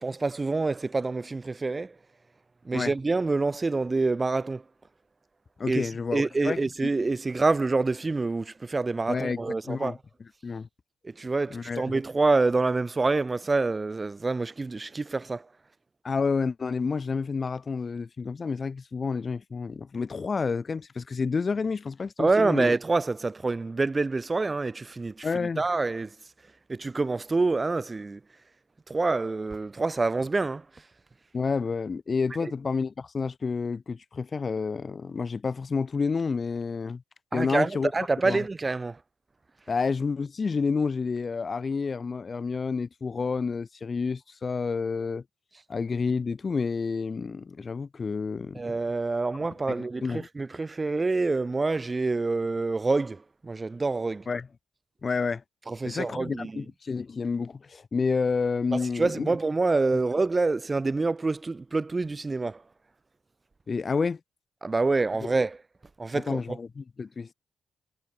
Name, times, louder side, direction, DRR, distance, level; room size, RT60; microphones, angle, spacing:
voice 1, 0.0-2.0 2.6-4.6 5.7-10.0 11.0-15.5 22.2-26.2 26.7-28.2 28.9-30.7 32.4-32.5 37.3-39.0 48.5-54.3 55.7-56.6 58.7-62.6 64.6-65.6 66.0-66.6, right 3 dB, 30° right, 0.4 m, -27 dB
voice 2, 5.6-6.6 9.1-9.4 9.7-10.0 10.4-10.7 11.5-11.8 16.0-22.7 25.2-25.6 31.3-37.0 37.3-37.9 38.2-38.4 39.7-45.2 45.7-48.6 49.7-49.8 50.0-50.3 54.3-54.5 55.0-55.4 55.8-59.3 63.7-64.2 66.1-67.3, left 5 dB, 40° left, 0.3 m, -29 dB
cardioid pair, 75°, 0 cm